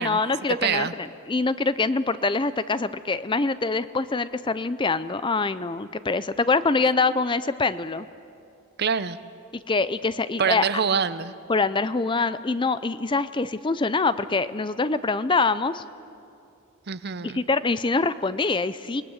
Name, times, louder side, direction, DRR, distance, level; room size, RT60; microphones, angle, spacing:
voice 1, 0.0-8.1 9.5-10.6 11.5-15.8 17.2-19.0, left 3 dB, 25° left, 14 dB, 0.5 m, -24 dB
voice 2, 0.6-0.9 8.8-9.2 10.4-11.3 16.9-17.4, right 6 dB, 50° right, 14 dB, 0.7 m, -25 dB
28.0 x 20.5 x 8.0 m, 2.6 s
head